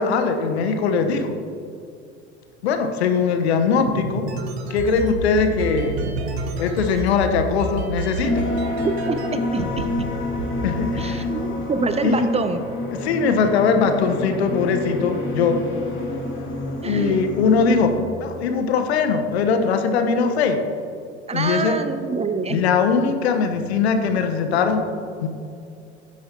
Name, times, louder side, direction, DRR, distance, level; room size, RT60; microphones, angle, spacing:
voice 1, 0.0-1.4 2.6-4.3 4.7-6.0 6.6-8.4 10.6-11.3 12.0-12.3 13.0-15.6 16.8-17.9 18.2-20.6 21.3-21.8 22.5-24.8 25.2-25.3, left 5 dB, 70° left, 6 dB, 1.2 m, -21 dB
sound 1, 3.9-9.3 9.6-10.0 10.4-11.8, right 3 dB, 65° right, 1.3 m, -29 dB
sound 2, 8.2-18.0, left 2 dB, 35° left, 2.7 m, -28 dB
voice 2, 8.8-9.9 11.0-12.6 16.8-17.2 21.3-22.6, right 4 dB, 20° right, 9 dB, 0.6 m, -26 dB
15.5 x 9.5 x 3.0 m, 2.5 s
figure-of-eight pair, 75°, 34 cm